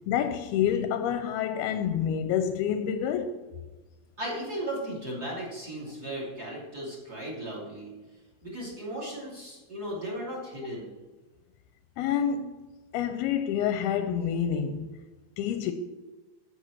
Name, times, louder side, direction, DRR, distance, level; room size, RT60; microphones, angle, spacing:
voice 1, 0.1-3.4 12.0-12.6 12.9-14.9 15.4-15.7, left 8 dB, 80° left, 2.4 m, -28 dB
voice 2, 4.2-7.9 8.4-10.9, right 1 dB, 25° right, 3.0 m, -36 dB
9.4 x 8.2 x 6.2 m
omnidirectional pair, 4.8 m